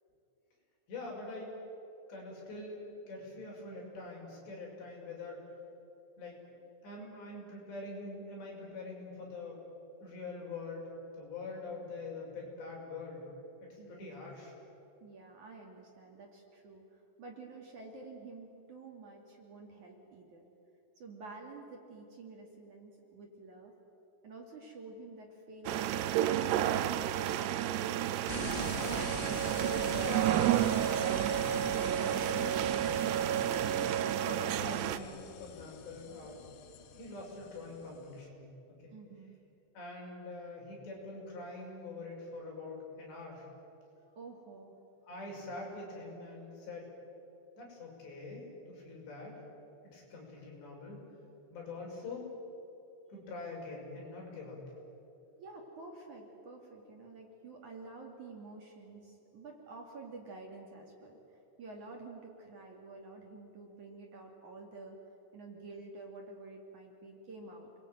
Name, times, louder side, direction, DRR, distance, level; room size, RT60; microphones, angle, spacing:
voice 1, 0.9-1.5 2.1-5.4 6.2-6.4 6.8-9.6 10.0-10.9 11.1-13.3 13.6-14.5 28.8-29.1 29.6-30.5 30.9-33.0 33.5-36.4 36.9-38.9 39.7-43.5 45.0-46.9 47.6-49.4 49.9-51.0 51.5-52.3 53.1-54.6, left 3 dB, 65° left, -2 dB, 8.6 m, -44 dB
voice 2, 13.8-14.1 15.0-20.4 21.0-23.7 24.2-27.0 38.9-39.4 44.1-44.8 55.4-65.0 65.3-67.7, right 3 dB, 45° right, 1 dB, 3.7 m, -50 dB
sound 1, 25.7-35.0, right 11 dB, 80° right, 2.8 m, -30 dB
sound 2, 28.3-38.2, left 9 dB, 85° left, 3.7 m, -45 dB
29.0 x 21.5 x 9.4 m, 2.9 s
omnidirectional pair, 5.3 m